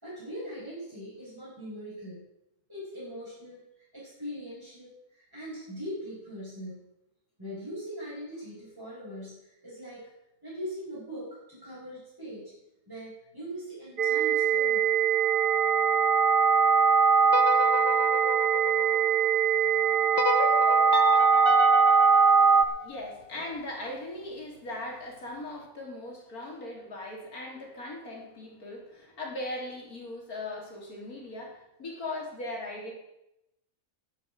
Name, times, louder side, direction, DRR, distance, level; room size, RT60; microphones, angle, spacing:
voice 1, 0.0-2.2 2.7-3.6 3.9-6.8 7.4-9.3 9.6-10.1 10.4-12.5 12.9-14.9, equal, 15° right, -10 dB, 6.1 m, -41 dB
sound 1, 14.0-22.6, right 6 dB, 40° right, 0.9 m, -22 dB
sound 2, 17.2-19.4 20.2-23.3, left 5 dB, 40° left, 1.3 m, -33 dB
voice 2, 22.3-32.9, left 2 dB, 70° left, -1 dB, 3.6 m, -39 dB
10.5 x 8.7 x 7.9 m, 0.87 s
omnidirectional pair, 1.6 m